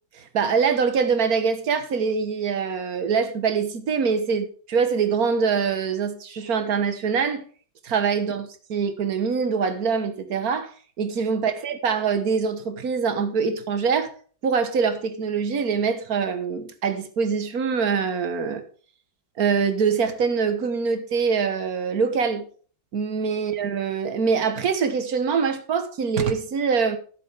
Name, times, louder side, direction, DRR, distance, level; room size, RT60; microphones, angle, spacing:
voice 1, 0.1-7.5 7.8-10.7 11.0-14.1 14.4-18.6 19.4-22.4 22.9-27.0, right 5 dB, 50° right, 1.6 m, -24 dB
14.5 x 7.7 x 3.5 m
omnidirectional pair, 2.2 m